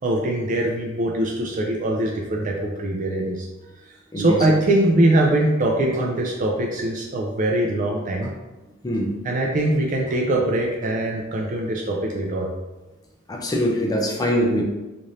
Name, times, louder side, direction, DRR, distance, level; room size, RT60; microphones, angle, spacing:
voice 1, 0.0-3.5 4.2-8.3 9.2-12.5, right 1 dB, 35° right, -1 dB, 0.4 m, -22 dB
voice 2, 4.1-4.4 8.8-9.1 13.3-14.6, equal, 20° left, 0 dB, 0.5 m, -23 dB
3.2 x 2.5 x 3.9 m, 1.1 s
head